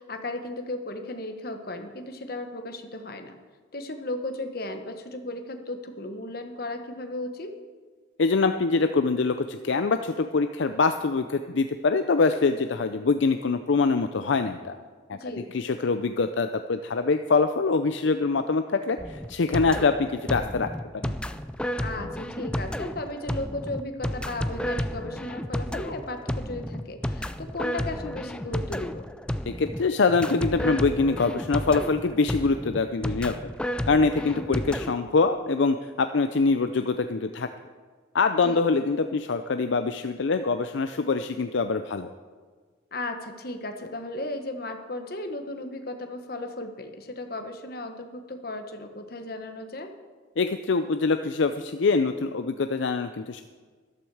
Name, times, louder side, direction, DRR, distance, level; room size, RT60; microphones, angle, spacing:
voice 1, 0.0-3.4 3.7-7.5 15.2-15.5 21.8-29.1 34.3-34.6 38.4-38.6 42.9-49.9, left 2 dB, 50° left, 6 dB, 1.2 m, -35 dB
voice 2, 8.2-14.8 15.1-20.7 21.0-21.1 29.5-33.5 33.9-37.5 38.1-42.1 50.4-53.4, left 4 dB, 70° left, 8 dB, 0.5 m, -24 dB
sound 1, 19.0-34.9, equal, 5° left, 0.3 m, -32 dB
13.5 x 12.5 x 4.8 m, 1.5 s
head